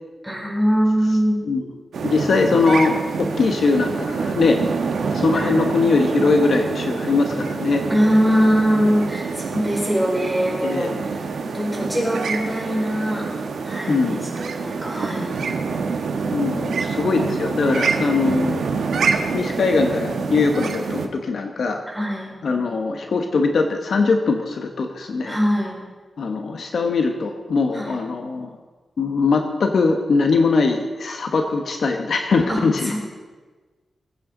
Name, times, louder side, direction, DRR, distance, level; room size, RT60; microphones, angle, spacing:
voice 1, 0.2-1.4 5.3-5.5 7.9-13.3 13.6-15.4 21.9-22.3 25.2-25.8 27.7-27.9 32.5-33.0, equal, ahead, -4 dB, 4.9 m, -22 dB
sound 1, 1.9-21.1, right 5 dB, 85° right, 1.2 m, -26 dB
voice 2, 2.0-4.6 5.1-7.8 10.6-11.0 13.9-14.2 16.3-18.6 19.3-21.8 22.4-25.4 26.2-28.5 29.0-32.9, left 4 dB, 70° left, 4 dB, 1.1 m, -21 dB
20.5 x 9.0 x 3.9 m, 1.3 s
wide cardioid pair, 95°, 0 cm